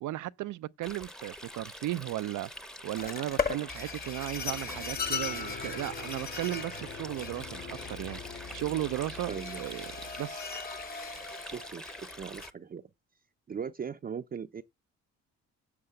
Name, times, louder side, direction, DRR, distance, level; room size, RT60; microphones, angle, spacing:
voice 1, 0.0-2.5 2.8-9.9 10.2-10.5, right 15 dB, 80° right, 0.6 m, -35 dB
Stream, 0.8-12.5, equal, ahead, 0.9 m, -45 dB
sound 1, 3.0-12.5, left 5 dB, 30° left, 1.3 m, -38 dB
sound 2, 4.3-10.2, left 5 dB, 70° left, 2.4 m, -46 dB
voice 2, 9.3-9.6 11.5-12.8 13.5-14.6, right 7 dB, 30° right, 0.6 m, -39 dB
9.6 x 6.6 x 7.8 m
cardioid pair, 90°, 30 cm